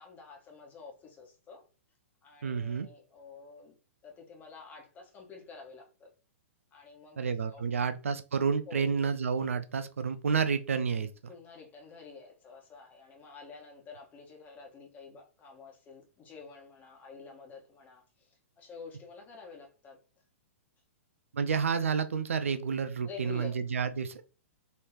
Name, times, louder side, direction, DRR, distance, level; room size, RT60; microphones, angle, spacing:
voice 1, 0.0-1.6 2.2-3.7 4.0-6.1 6.7-7.2 7.5-7.6 8.7-8.9 11.3-20.0 23.0-23.5, left 5 dB, 20° left, 1.2 m, -49 dB
voice 2, 2.4-2.9 7.2-11.1 21.3-24.2, right 6 dB, 70° right, 0.4 m, -30 dB
4.0 x 3.2 x 2.8 m
figure-of-eight pair, 110°, 7 cm